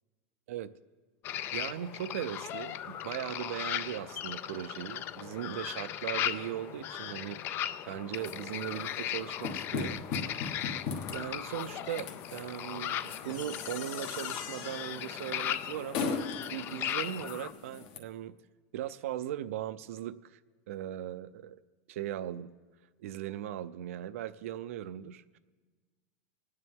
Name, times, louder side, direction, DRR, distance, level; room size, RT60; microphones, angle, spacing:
sound 1, 1.2-17.5, left 11 dB, 30° left, 0.4 m, -38 dB
voice 1, 1.5-7.4 7.9-10.3 11.1-18.3 18.7-20.4 20.7-21.6 21.9-22.5 23.0-25.4, right 11 dB, 80° right, 15 dB, 0.5 m, -39 dB
sound 2, 8.1-18.0, left 5 dB, 50° left, 1.3 m, -40 dB
26.5 x 9.7 x 3.6 m, 1.4 s
supercardioid pair, 165°, 7 cm